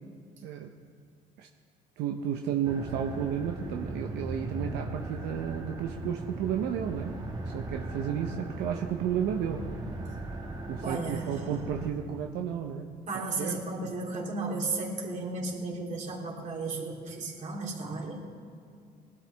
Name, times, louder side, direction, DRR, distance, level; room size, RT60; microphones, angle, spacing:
voice 1, 2.0-7.1 7.5-9.6 10.7-12.9 13.4-13.6 13.8-13.9, right 8 dB, 85° right, 3 dB, 0.8 m, -32 dB
sound 1, 2.6-11.9, right 2 dB, 25° right, 1.6 m, -38 dB
voice 2, 10.8-11.3 13.1-18.3, right 3 dB, 50° right, -1 dB, 3.0 m, -34 dB
20.0 x 12.0 x 3.5 m, 2.3 s
cardioid pair, 110°, 17 cm